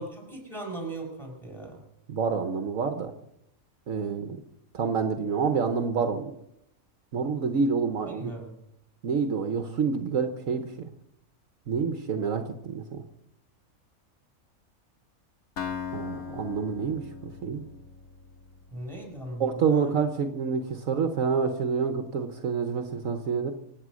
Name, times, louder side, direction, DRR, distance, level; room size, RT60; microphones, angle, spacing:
voice 1, 0.0-1.8 8.1-8.6 18.7-20.0, right 2 dB, ahead, 1 dB, 5.5 m, -38 dB
voice 2, 2.1-3.1 3.9-4.4 4.7-6.3 7.1-8.3 9.0-10.7 11.7-13.0 15.9-17.6 19.4-23.5, right 5 dB, 65° right, 7 dB, 1.3 m, -28 dB
Acoustic guitar, 15.6-19.4, left 6 dB, 85° left, 2.1 m, -39 dB
25.5 x 8.6 x 6.3 m, 0.79 s
omnidirectional pair, 1.5 m